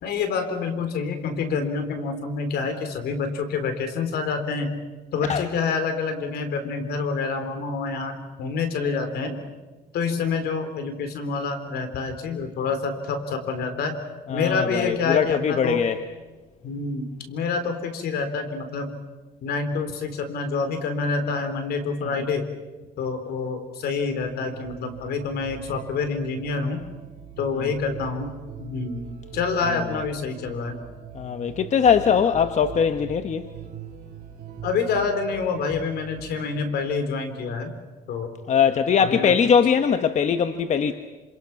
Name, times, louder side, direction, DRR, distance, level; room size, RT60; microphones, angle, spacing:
voice 1, 0.0-4.8 5.1-9.4 9.9-14.0 14.3-15.8 16.6-19.0 19.4-22.5 23.0-26.8 27.4-28.3 28.6-29.1 29.3-30.8 34.6-37.7 38.1-38.3 39.0-39.3, left 4 dB, 70° left, 3.8 m, -27 dB
voice 2, 14.3-16.0 29.9-30.0 31.1-33.5 38.5-40.9, left 7 dB, 45° left, 1.1 m, -21 dB
sound 1, 24.2-36.6, right 9 dB, 65° right, 3.7 m, -41 dB
27.0 x 27.0 x 5.9 m
cardioid pair, 110°, 17 cm